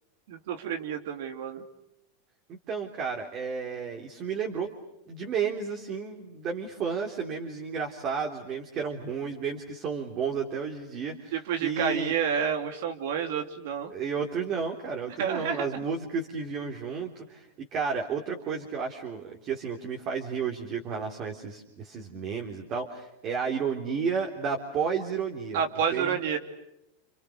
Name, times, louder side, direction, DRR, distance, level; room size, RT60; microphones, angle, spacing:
voice 1, 0.3-1.6 11.3-13.9 15.2-15.7 25.5-26.4, right 7 dB, 70° right, 5 dB, 2.9 m, -29 dB
voice 2, 2.5-4.7 5.1-12.1 13.9-25.6 25.9-26.2, right 6 dB, 35° right, 1 dB, 3.5 m, -32 dB
30.0 x 29.0 x 6.6 m, 0.86 s
supercardioid pair, 145°, 0 cm